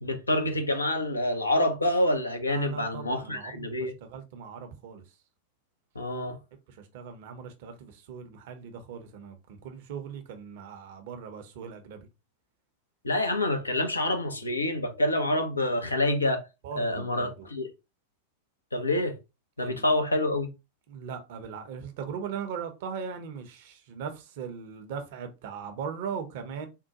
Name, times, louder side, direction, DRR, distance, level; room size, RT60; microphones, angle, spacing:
voice 1, 0.0-3.9 6.0-6.4 13.0-16.5 16.8-17.7 18.7-19.1 19.6-20.5, left 1 dB, 80° left, 0.6 m, -27 dB
voice 2, 2.5-5.1 6.7-12.1 16.6-17.5 19.6-20.0 20.9-26.7, right 6 dB, 50° right, 0.6 m, -39 dB
3.6 x 2.2 x 2.7 m
figure-of-eight pair, 90°, 0 cm